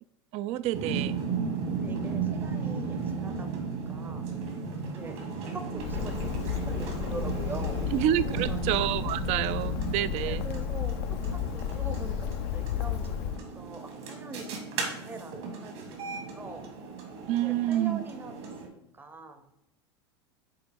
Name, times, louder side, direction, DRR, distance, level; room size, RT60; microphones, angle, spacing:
voice 1, 0.3-1.2 7.9-10.4 17.3-18.0, right 13 dB, 50° right, 16 dB, 0.4 m, -28 dB
sound 1, 0.7-18.7, right 5 dB, 65° right, 1.9 m, -35 dB
voice 2, 1.7-4.3 4.8-9.0 10.2-16.7 17.4-18.3 18.6-19.5, right 3 dB, 15° right, 8 dB, 0.7 m, -44 dB
Bird, 5.8-13.4, left 11 dB, 60° left, 0.4 m, -33 dB
6.8 x 4.1 x 3.7 m, 0.84 s
hypercardioid pair, 90°, 15 cm